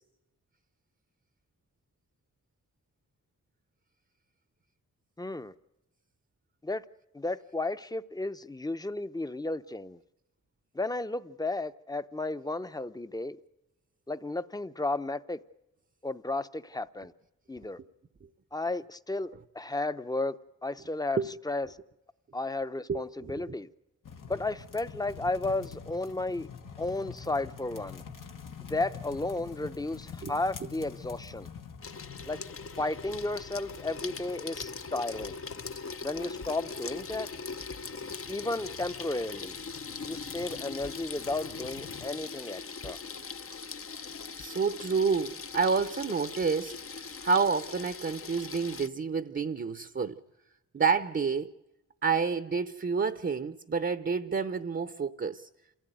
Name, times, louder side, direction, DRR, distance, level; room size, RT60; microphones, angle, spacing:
voice 1, 5.2-5.5 6.6-6.8 7.1-10.0 10.7-13.4 14.1-15.4 16.0-17.1 17.5-17.8 18.5-21.8 22.3-23.7 24.3-26.5 26.8-28.0 28.7-31.5 32.3-32.4 32.8-35.4 36.0-37.3 38.3-39.6 40.1-43.0, left 2 dB, 10° left, 0.8 m, -33 dB
voice 2, 22.9-23.6 30.2-30.3 42.9-43.0 44.3-50.2 50.7-51.5 52.0-55.5, right 5 dB, 35° right, 0.9 m, -29 dB
sound 1, 24.0-42.1, left 6 dB, 75° left, 1.6 m, -47 dB
Water tap faucet / Sink (filling or washing), 31.8-48.9, left 5 dB, 45° left, 0.8 m, -41 dB
27.5 x 16.5 x 9.2 m
cardioid pair, 75°, 32 cm